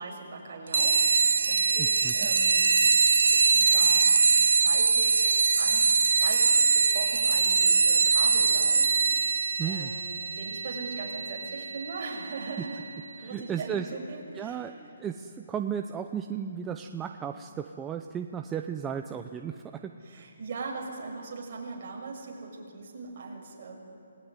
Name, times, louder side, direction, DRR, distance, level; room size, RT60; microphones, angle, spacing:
voice 1, 0.0-2.7 3.1-4.1 4.5-5.3 5.5-12.8 13.2-14.7 20.0-23.7, right 4 dB, 40° right, -1 dB, 6.3 m, -40 dB
sound 1, 0.7-12.8, right 4 dB, 70° right, 0.8 m, -23 dB
voice 2, 1.8-2.1 9.6-9.9 13.2-13.9 14.4-19.8 20.1-20.2, right 8 dB, 10° right, 5 dB, 0.6 m, -35 dB
27.0 x 19.0 x 9.7 m, 2.7 s
hypercardioid pair, 170°, 0 cm